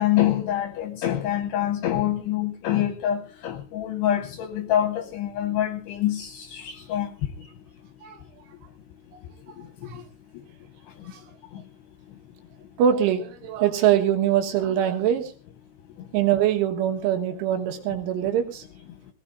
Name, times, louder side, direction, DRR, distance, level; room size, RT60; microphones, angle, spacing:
voice 1, 0.0-7.1, left 11 dB, 80° left, 2.6 m, -25 dB
voice 2, 12.8-15.3 16.1-18.6, right 10 dB, 85° right, 3.9 m, -23 dB
21.0 x 16.5 x 2.6 m
omnidirectional pair, 5.4 m